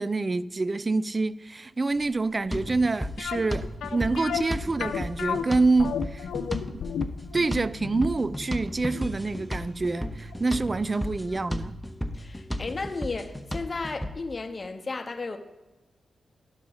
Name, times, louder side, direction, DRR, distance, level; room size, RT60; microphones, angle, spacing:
voice 1, 0.0-3.7 3.9-6.3 7.3-11.8, right 3 dB, 40° right, 0.4 m, -26 dB
sound 1, 1.9-7.9, equal, 70° right, 3.6 m, -53 dB
sound 2, 2.5-14.1, equal, 10° left, 0.7 m, -35 dB
sound 3, 3.2-10.0 10.3-10.4 11.0-11.1 11.4-11.5, left 7 dB, 85° left, 0.4 m, -33 dB
voice 2, 12.1-15.4, left 3 dB, 45° left, 0.8 m, -34 dB
12.0 x 5.5 x 3.9 m
supercardioid pair, 45°, 0 cm